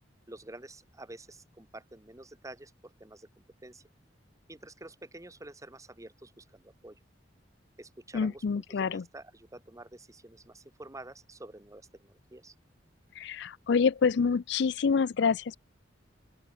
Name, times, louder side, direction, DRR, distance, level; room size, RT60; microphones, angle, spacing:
voice 1, 0.3-3.3 3.6-3.8 4.5-7.0 7.8-12.5, right 2 dB, 15° right, 1.7 m, -49 dB
voice 2, 8.1-9.0 13.2-15.6, left 5 dB, 65° left, 0.4 m, -27 dB
open air
head